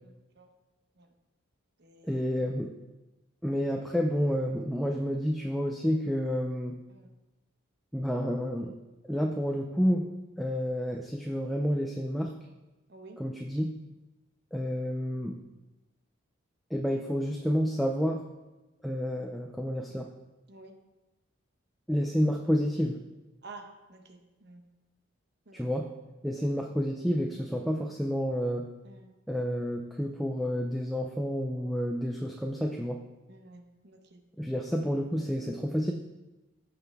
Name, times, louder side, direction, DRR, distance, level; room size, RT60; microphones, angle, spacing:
voice 1, 0.0-0.5 1.0-1.1 1.8-2.2 6.9-7.1 12.9-13.2 20.5-20.8 23.4-24.7 25.5-25.7 26.3-26.5 28.8-29.1 33.3-34.2, right 3 dB, 55° right, 5 dB, 1.0 m, -51 dB
voice 2, 2.0-2.7 3.4-6.7 7.9-8.8 9.0-10.1 10.4-12.4 13.2-13.8 14.5-15.4 16.7-18.2 18.8-20.1 21.9-23.0 25.5-25.9 26.2-28.7 29.3-33.0 34.4-35.9, equal, ahead, 1 dB, 0.5 m, -29 dB
15.0 x 5.9 x 3.5 m, 1.1 s
head